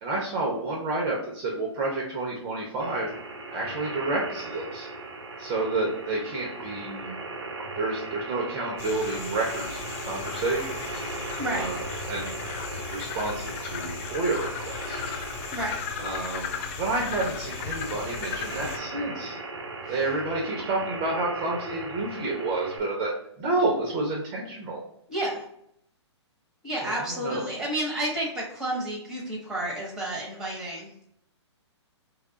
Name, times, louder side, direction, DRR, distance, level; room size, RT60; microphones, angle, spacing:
voice 1, 0.0-3.1 3.5-4.9 5.4-7.1 7.8-11.0 11.5-12.3 12.6-15.2 16.0-19.4 19.9-24.8 26.8-27.4, right 2 dB, 25° right, -2 dB, 0.8 m, -30 dB
sound 1, 2.8-22.8, right 2 dB, 70° right, 0.8 m, -38 dB
sound 2, 8.8-18.8, left 6 dB, 30° left, 0.3 m, -36 dB
voice 2, 11.4-11.7 15.5-15.8 19.8-19.9 25.1-25.5 26.6-30.9, right 1 dB, 5° right, -4 dB, 1.0 m, -31 dB
3.1 x 2.4 x 3.9 m, 0.72 s
hypercardioid pair, 130°, 15 cm